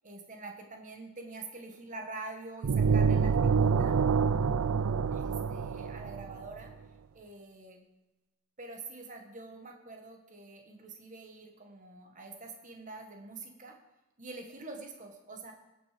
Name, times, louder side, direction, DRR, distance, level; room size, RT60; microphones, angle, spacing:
voice 1, 0.0-3.9 5.1-6.7 7.1-7.8 8.6-13.8 14.2-15.5, right 3 dB, 35° right, 3 dB, 1.4 m, -45 dB
sound 1, 2.6-6.5, right 5 dB, 75° right, 0.4 m, -27 dB
17.5 x 6.2 x 5.0 m, 1.0 s
head